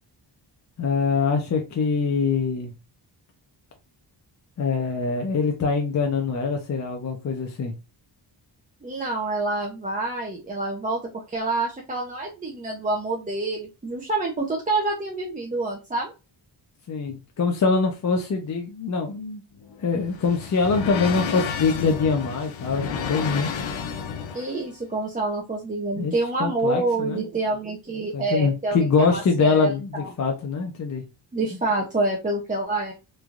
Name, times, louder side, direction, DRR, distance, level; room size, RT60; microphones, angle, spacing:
voice 1, 0.8-2.7 4.6-7.7 16.9-19.4 19.8-23.5 26.0-26.1 26.4-27.2 28.1-31.0, left 4 dB, 40° left, 2 dB, 0.5 m, -24 dB
voice 2, 8.8-16.1 24.3-30.1 31.3-32.9, right 2 dB, 20° right, -2 dB, 0.4 m, -27 dB
sound 1, 19.5-24.6, left 6 dB, 90° left, 0.6 m, -31 dB
3.1 x 2.2 x 2.4 m, 0.28 s
wide cardioid pair, 165°, 45 cm